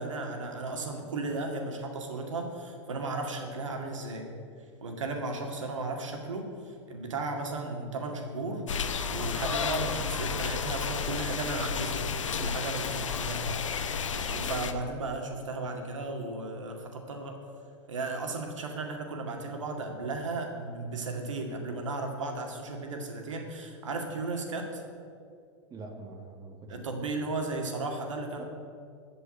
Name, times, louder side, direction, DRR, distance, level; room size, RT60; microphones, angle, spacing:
voice 1, 0.0-4.3 4.8-8.6 9.1-12.0 12.4-13.9 14.2-17.4 17.9-24.8 26.7-28.4, right 3 dB, 80° right, 2 dB, 2.1 m, -35 dB
sound 1, 8.7-14.7, left 6 dB, 85° left, 0.9 m, -32 dB
voice 2, 25.7-27.0 28.4-28.5, right 3 dB, 25° right, 3 dB, 1.7 m, -44 dB
15.0 x 5.5 x 9.1 m, 2.3 s
hypercardioid pair, 100°, 16 cm